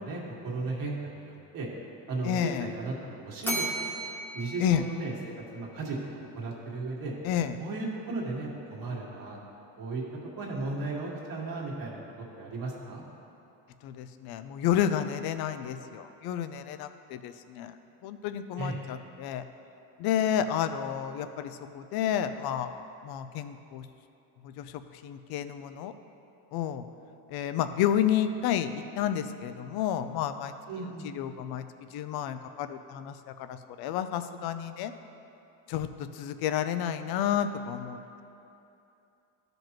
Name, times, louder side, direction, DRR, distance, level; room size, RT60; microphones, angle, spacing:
voice 1, 0.0-1.7 2.1-3.6 4.3-5.1 5.5-7.1 7.6-9.4 9.8-10.0 10.4-12.0 12.4-13.0 18.6-18.8 30.7-31.1, right 3 dB, 50° right, -3 dB, 1.9 m, -35 dB
voice 2, 2.2-2.7 4.6-4.8 7.2-7.6 13.8-17.7 18.0-19.4 20.0-23.9 24.4-25.9 26.5-26.8 27.3-28.7 29.0-30.5 31.0-31.6 31.9-34.9 35.7-38.2, left 10 dB, 60° left, 10 dB, 0.6 m, -30 dB
Bell, 3.4-5.7, right 1 dB, 5° left, 1.3 m, -36 dB
13.5 x 5.3 x 3.0 m, 2.8 s
cardioid pair, 110°, 42 cm